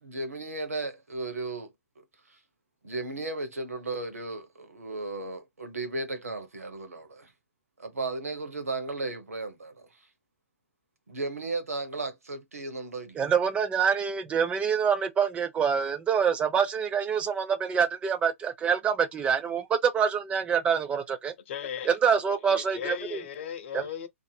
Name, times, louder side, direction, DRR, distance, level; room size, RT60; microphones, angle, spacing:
voice 1, 0.0-1.7 2.3-2.4 2.8-7.3 7.8-10.1 11.1-13.2, right 2 dB, 85° right, 0.8 m, -35 dB
voice 2, 13.2-21.3 21.9-23.2 23.7-23.8, right 7 dB, 15° right, 0.4 m, -26 dB
voice 3, 21.5-22.0 22.5-24.1, left 8 dB, 55° left, 0.6 m, -36 dB
2.6 x 2.6 x 2.2 m
hypercardioid pair, 120°, 8 cm